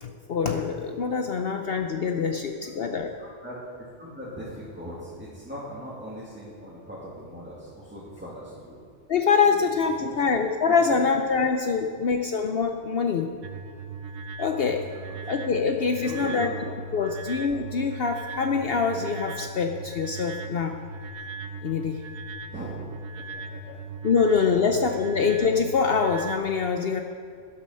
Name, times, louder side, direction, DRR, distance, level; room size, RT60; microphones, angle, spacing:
voice 1, 0.0-3.1 9.1-13.3 14.4-14.8 15.3-16.5 16.9-20.8 21.6-22.0 24.0-27.0, left 5 dB, 60° left, 4 dB, 0.9 m, -24 dB
voice 2, 2.3-2.7 3.2-3.6 4.0-8.8 9.4-9.7 10.0-10.2 10.7-11.0 11.9-12.2 14.5-15.2 15.9-16.5 16.9-17.2 22.5-22.7 23.2-23.8 24.2-25.1, equal, 10° right, -8 dB, 2.2 m, -41 dB
sound 1, 13.4-26.4, right 2 dB, 90° right, 1.1 m, -38 dB
12.5 x 10.0 x 5.5 m, 2.3 s
omnidirectional pair, 1.2 m